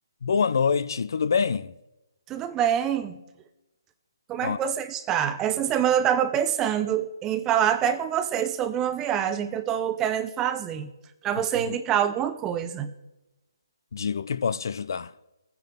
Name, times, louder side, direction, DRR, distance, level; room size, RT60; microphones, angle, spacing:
voice 1, 0.2-1.7 4.4-4.6 11.4-11.8 13.9-15.1, left 6 dB, 60° left, 0.5 m, -26 dB
voice 2, 2.3-3.2 4.3-10.9 11.2-12.9, right 9 dB, 15° right, 0.7 m, -25 dB
20.5 x 9.4 x 3.5 m
figure-of-eight pair, 145°, 2 cm